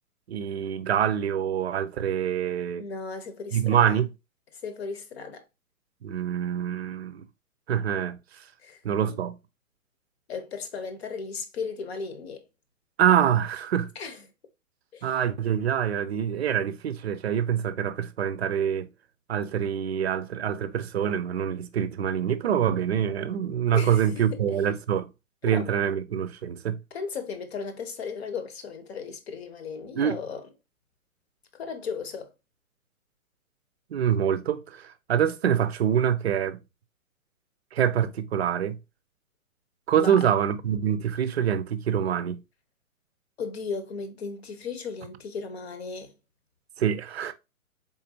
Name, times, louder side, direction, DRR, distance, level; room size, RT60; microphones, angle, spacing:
voice 1, 0.3-2.8 3.5-4.1 6.0-7.3 7.7-8.4 8.8-9.3 13.0-13.9 15.0-18.9 19.3-25.1 25.4-26.8 30.0-30.2 33.9-36.6 37.7-38.8 39.9-42.4 46.8-47.3, right 9 dB, 50° right, 0.5 m, -25 dB
voice 2, 2.8-4.0 4.6-5.4 8.6-8.8 10.3-12.4 13.9-14.2 14.9-15.2 23.7-24.4 25.5-25.7 26.9-30.4 31.6-32.3 39.9-40.3 43.4-46.1, left 5 dB, 45° left, 1.0 m, -36 dB
4.1 x 3.7 x 2.7 m
figure-of-eight pair, 125°, 43 cm